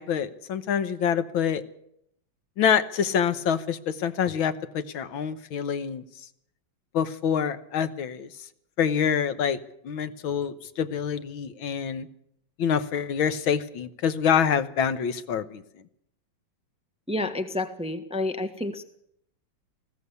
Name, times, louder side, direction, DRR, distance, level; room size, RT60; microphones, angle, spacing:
voice 1, 0.0-1.6 2.6-6.0 6.9-8.3 8.8-9.6 9.8-12.1 12.6-15.6, left 7 dB, 80° left, 12 dB, 1.9 m, -26 dB
voice 2, 17.1-18.8, left 2 dB, 5° right, 8 dB, 1.1 m, -29 dB
19.5 x 16.0 x 8.3 m, 0.74 s
omnidirectional pair, 2.2 m